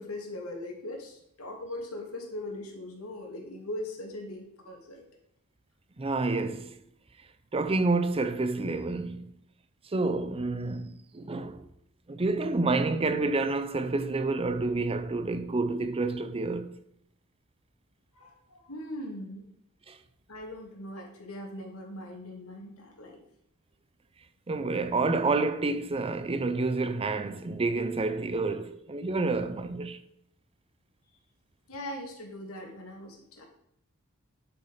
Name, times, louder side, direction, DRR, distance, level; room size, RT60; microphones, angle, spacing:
voice 1, 0.0-5.0 18.1-19.5 20.3-23.2 31.7-33.4, left 1 dB, 80° left, 2.7 m, -40 dB
voice 2, 6.0-6.8 7.5-9.3 9.9-11.6 12.1-16.8 19.9-20.0 24.5-30.0, right 3 dB, 25° right, 0.6 m, -29 dB
11.5 x 6.4 x 5.6 m
head